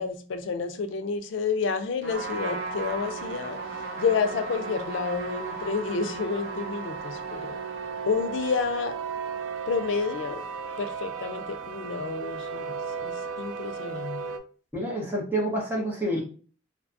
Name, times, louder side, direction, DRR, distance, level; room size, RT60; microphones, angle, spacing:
voice 1, 0.0-3.6 4.0-7.6 8.1-9.0 9.7-10.5 10.8-14.3, left 5 dB, 90° left, 0.4 m, -30 dB
Trumpet, 2.0-8.2, right 2 dB, 45° right, 0.9 m, -38 dB
sound 1, 2.1-14.4, right 5 dB, 90° right, 0.4 m, -36 dB
voice 2, 14.7-16.2, right 1 dB, 10° right, 0.7 m, -28 dB
2.6 x 2.2 x 2.5 m
head